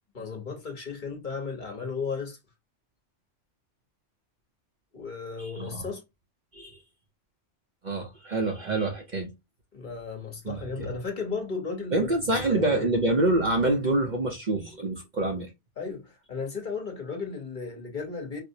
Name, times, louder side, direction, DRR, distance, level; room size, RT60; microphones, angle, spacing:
voice 1, 0.1-2.4 4.9-6.0 9.7-12.1 12.5-12.9 15.8-18.4, left 5 dB, 45° left, 1.0 m, -35 dB
voice 2, 5.4-5.8 6.5-6.8 7.8-9.3 10.5-10.9 11.9-15.5, right 2 dB, 45° right, 0.7 m, -26 dB
4.4 x 2.0 x 2.6 m
omnidirectional pair, 1.2 m